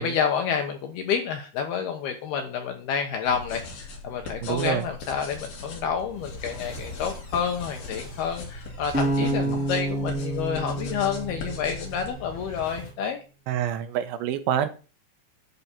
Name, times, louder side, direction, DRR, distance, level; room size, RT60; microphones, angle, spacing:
voice 1, 0.0-13.2, left 7 dB, 75° left, 4 dB, 2.4 m, -29 dB
sound 1, 3.3-12.1, left 3 dB, 50° left, 4.0 m, -40 dB
voice 2, 4.4-4.9 9.2-9.6 13.5-14.7, right 10 dB, 75° right, 10 dB, 2.9 m, -27 dB
sound 2, 5.6-13.0, equal, 20° left, 2.1 m, -45 dB
sound 3, 8.9-12.1, right 2 dB, 10° right, 0.4 m, -28 dB
11.0 x 5.7 x 7.1 m, 0.35 s
omnidirectional pair, 5.8 m